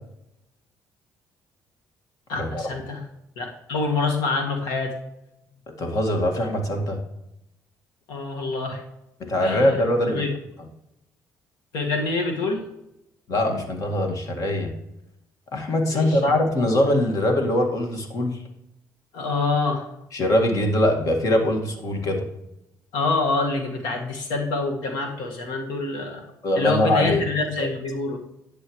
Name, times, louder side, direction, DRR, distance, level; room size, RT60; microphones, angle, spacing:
voice 1, 2.3-3.0 3.4-4.9 8.1-8.8 9.4-9.8 10.1-10.3 11.7-12.6 15.9-16.4 19.1-19.9 22.9-26.3 26.6-28.2, left 3 dB, 85° left, 2 dB, 1.8 m, -26 dB
voice 2, 5.8-7.0 9.2-10.3 13.3-14.7 15.5-18.4 20.1-22.2 26.4-27.2 27.6-27.7, left 1 dB, 55° left, 3 dB, 1.9 m, -22 dB
11.0 x 7.8 x 3.1 m, 0.87 s
cardioid pair, 90°, 7 cm